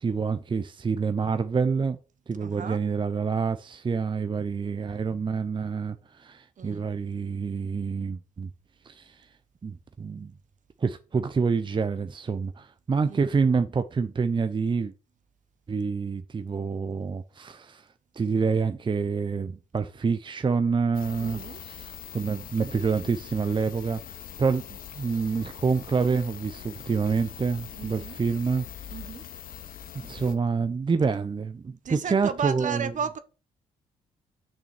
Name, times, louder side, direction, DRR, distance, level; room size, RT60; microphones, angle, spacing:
voice 1, 0.0-2.0 2.3-8.5 8.8-9.3 9.6-10.3 10.8-14.9 15.7-17.9 18.1-24.6 24.9-28.7 28.9-29.0 30.0-32.9, right 5 dB, 30° right, 0.7 m, -27 dB
voice 2, 2.4-2.8 6.6-6.9 13.1-13.3 21.2-21.6 27.7-28.2 28.9-29.2 31.8-33.2, right 7 dB, 55° right, 1.1 m, -34 dB
sound 1, 20.9-30.3, left 9 dB, 65° left, 1.1 m, -42 dB
6.3 x 6.2 x 4.4 m
supercardioid pair, 55°, 16 cm